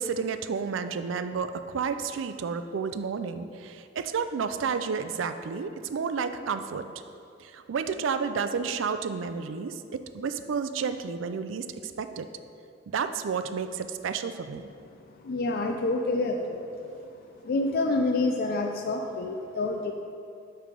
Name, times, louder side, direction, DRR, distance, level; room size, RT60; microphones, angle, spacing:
voice 1, 0.0-6.9 7.4-12.3 12.9-14.7, right 5 dB, 80° right, 10 dB, 0.4 m, -31 dB
voice 2, 15.2-16.9 17.4-19.9, left 2 dB, 50° left, 2 dB, 0.4 m, -28 dB
8.9 x 3.4 x 5.2 m, 2.5 s
head